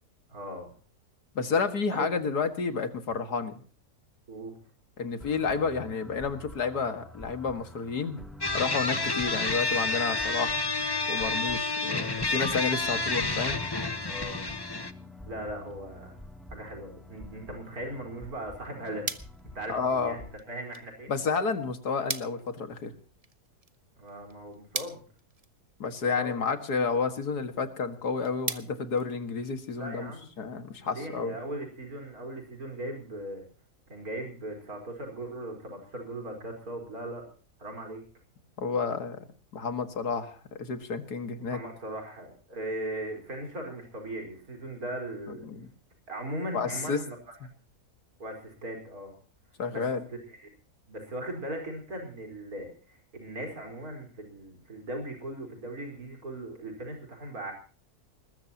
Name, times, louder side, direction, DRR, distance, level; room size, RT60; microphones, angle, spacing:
voice 1, 0.3-0.7 1.9-2.1 4.3-4.5 14.0-14.5 15.2-16.1 16.5-19.1 19.5-21.2 24.0-25.0 26.2-26.3 29.7-30.3 30.8-33.4 33.9-37.3 37.6-38.0 41.4-45.5 46.1-47.2 48.2-49.1 49.7-50.5 50.9-57.5, right 1 dB, 65° right, 2 dB, 5.1 m, -38 dB
voice 2, 1.4-3.6 5.0-8.2 8.5-10.6 11.1-13.6 19.7-20.2 21.1-22.9 25.8-30.1 30.4-31.4 38.6-39.2 39.5-41.6 45.4-45.7 46.5-47.0 49.6-50.0, left 5 dB, 85° left, 8 dB, 2.4 m, -30 dB
sound 1, 5.2-20.4, left 1 dB, ahead, 2.6 m, -47 dB
sound 2, 8.4-14.9, left 3 dB, 20° left, 0.9 m, -29 dB
sound 3, 19.0-29.8, right 4 dB, 25° right, 1.1 m, -43 dB
21.0 x 21.0 x 2.9 m, 0.40 s
omnidirectional pair, 1.6 m